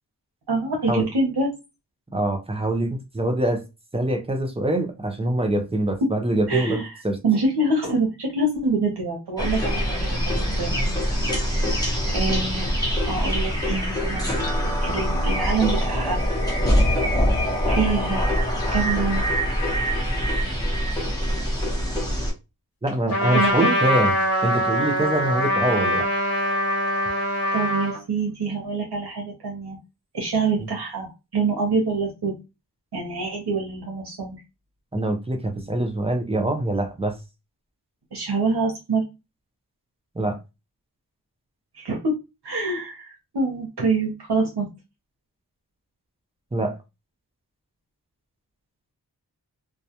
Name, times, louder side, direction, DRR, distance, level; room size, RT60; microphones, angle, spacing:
voice 1, 0.5-1.5 6.5-10.9 11.6-12.7 13.1-14.4 14.8-16.2 17.7-18.3 18.7-19.2 23.3-23.7 27.5-29.8 30.1-32.3 32.9-34.4 38.1-39.0 41.8-42.1 42.4-44.7, right 3 dB, 75° right, -1 dB, 0.8 m, -25 dB
voice 2, 2.1-3.6 3.9-7.2 22.8-24.1 24.4-26.1 30.6-30.7 34.9-37.2 40.1-40.4 46.5-46.8, right 1 dB, 15° right, 4 dB, 0.5 m, -24 dB
sound 1, 9.4-22.3, equal, 10° left, 0.9 m, -24 dB
Wind instrument woodwind instrument, 14.7-20.4, left 5 dB, 60° left, 0.7 m, -38 dB
Trumpet, 23.1-28.0, equal, 35° left, 1.1 m, -23 dB
2.3 x 2.1 x 2.8 m, 0.25 s
wide cardioid pair, 65°, 40 cm